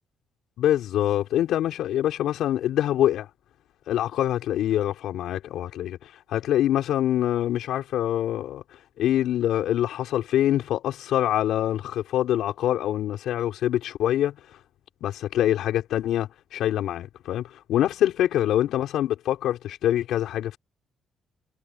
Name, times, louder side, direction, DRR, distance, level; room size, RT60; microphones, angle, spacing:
voice 1, 0.6-3.3 3.9-8.6 9.0-14.6 15.0-20.6, left 12 dB, 80° left, 5.2 m, -25 dB
cardioid pair, 90°, 0 cm